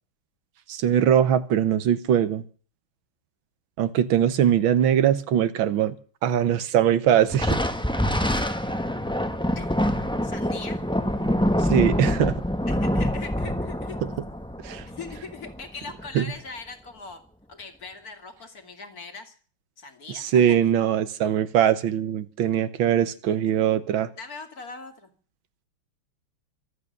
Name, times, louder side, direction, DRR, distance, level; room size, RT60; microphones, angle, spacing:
voice 1, 0.7-2.4 3.8-5.9 6.2-7.6 11.6-12.4 14.6-14.8 16.1-16.2 20.1-24.1, right 9 dB, 75° right, 1.8 m, -21 dB
Thunder, 7.3-16.1, equal, 5° left, 0.9 m, -26 dB
voice 2, 10.2-10.8 12.7-14.0 14.9-17.2 17.5-19.3 19.8-20.6 24.1-25.1, left 4 dB, 45° left, 2.8 m, -40 dB
25.0 x 8.6 x 6.6 m
omnidirectional pair, 2.2 m